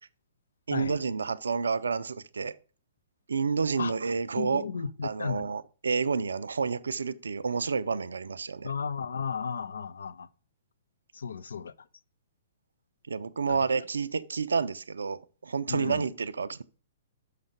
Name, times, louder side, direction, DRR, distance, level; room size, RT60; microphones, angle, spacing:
voice 1, 0.7-2.5 3.3-4.6 5.0-8.7 13.1-16.6, right 5 dB, 70° right, 0.4 m, -29 dB
voice 2, 4.4-5.5 8.6-10.3 11.1-11.9 13.5-13.7 15.7-16.1, left 6 dB, 65° left, 0.4 m, -34 dB
6.6 x 5.6 x 5.2 m
figure-of-eight pair, 115°, 0 cm